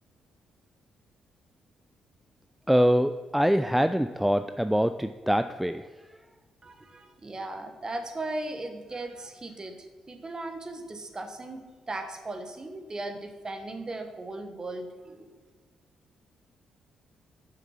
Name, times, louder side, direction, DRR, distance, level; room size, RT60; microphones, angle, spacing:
voice 1, 2.7-5.9, equal, 5° right, 10 dB, 0.3 m, -24 dB
voice 2, 6.6-15.3, right 2 dB, 30° right, 6 dB, 1.3 m, -37 dB
7.2 x 5.8 x 5.6 m, 1.4 s
hypercardioid pair, 40°, 2 cm